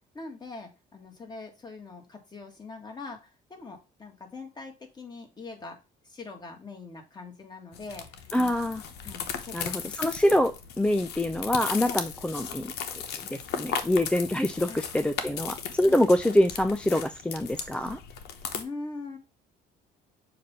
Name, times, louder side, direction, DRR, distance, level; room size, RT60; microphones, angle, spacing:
voice 1, 0.1-5.8 6.0-8.3 9.0-9.7 11.8-12.0 14.7-14.8 15.9-16.0 18.5-19.2, left 3 dB, 25° left, 2 dB, 1.7 m, -42 dB
sound 1, 7.7-18.6, left 7 dB, 75° left, 1.0 m, -36 dB
voice 2, 8.3-8.8 9.5-12.7 13.1-18.0, left 1 dB, 5° left, 9 dB, 0.3 m, -25 dB
6.7 x 2.6 x 5.5 m, 0.29 s
cardioid pair, 110°, 17 cm